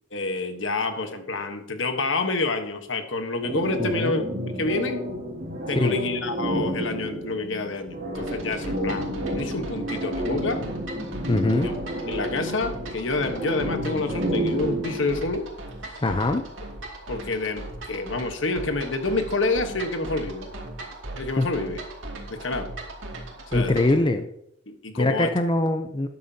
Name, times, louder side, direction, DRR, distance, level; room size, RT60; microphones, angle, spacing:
voice 1, 0.1-5.0 5.7-10.6 11.5-11.7 12.1-15.5 15.8-16.0 17.1-20.5 21.2-21.8 22.3-22.7 23.5-23.8 24.7-25.3, left 3 dB, 75° left, 7 dB, 1.2 m, -28 dB
sound 1, 3.4-15.2, equal, 45° right, 3.0 m, -30 dB
voice 2, 3.8-4.2 5.8-6.0 11.3-11.7 16.0-16.4 21.4-21.5 23.5-24.3 25.0-26.1, left 2 dB, 25° left, 8 dB, 0.6 m, -22 dB
sound 2, 8.1-24.0, right 2 dB, 85° right, 2.3 m, -39 dB
12.5 x 9.4 x 2.8 m, 0.73 s
head